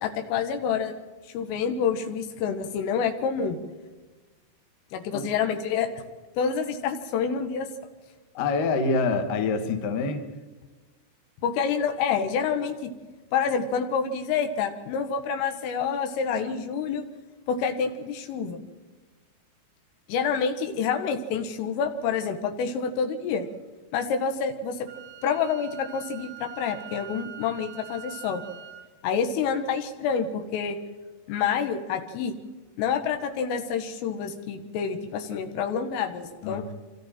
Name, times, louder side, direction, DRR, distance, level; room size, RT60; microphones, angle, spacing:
voice 1, 0.0-0.9 1.3-3.6 4.9-6.0 6.4-7.7 11.4-12.9 13.3-17.0 17.5-18.6 20.1-23.5 23.9-24.9 25.2-28.4 29.0-30.8 31.3-32.3 32.8-36.6, left 6 dB, 80° left, 6 dB, 3.9 m, -27 dB
voice 2, 8.3-10.3 36.4-36.7, left 4 dB, 60° left, 6 dB, 2.4 m, -26 dB
Wind instrument woodwind instrument, 24.9-28.9, right 11 dB, 75° right, 2.8 m, -44 dB
26.5 x 26.0 x 4.4 m, 1.3 s
omnidirectional pair, 5.9 m